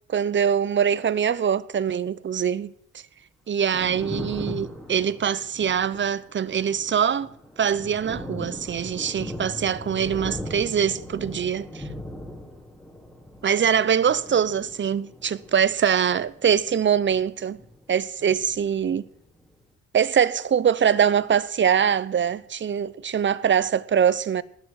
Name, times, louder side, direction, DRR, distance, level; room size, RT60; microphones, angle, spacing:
voice 1, 0.1-2.7 3.5-7.3 7.6-11.8 13.4-17.6 17.9-19.1 19.9-24.4, right 8 dB, 40° right, 0.8 m, -23 dB
Thunder, 3.5-18.0 18.2-19.5, left 1 dB, ahead, 4.1 m, -39 dB
19.5 x 7.1 x 7.7 m
cardioid pair, 90°, 30 cm